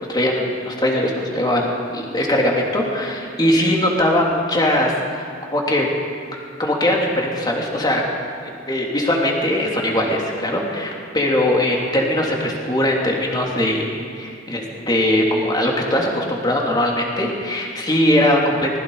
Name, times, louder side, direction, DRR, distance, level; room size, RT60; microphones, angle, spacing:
voice 1, 0.1-5.9 6.6-8.0 8.4-13.9 14.2-18.8, left 1 dB, 20° left, -1 dB, 3.3 m, -20 dB
24.5 x 20.5 x 5.1 m, 2.4 s
head